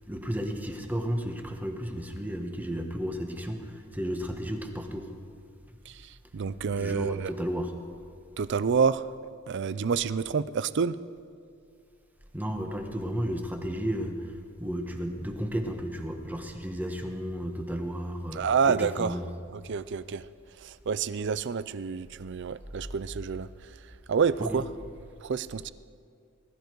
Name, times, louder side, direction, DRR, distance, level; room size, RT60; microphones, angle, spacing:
voice 1, 0.1-5.1 6.7-7.7 12.3-19.3 24.4-24.6, equal, 10° right, 4 dB, 1.2 m, -33 dB
voice 2, 5.9-7.3 8.4-11.0 18.3-19.2 19.5-20.2 20.6-23.5 24.1-24.6 25.2-25.7, right 6 dB, 55° right, 16 dB, 0.4 m, -28 dB
21.0 x 13.0 x 4.6 m, 2.3 s
head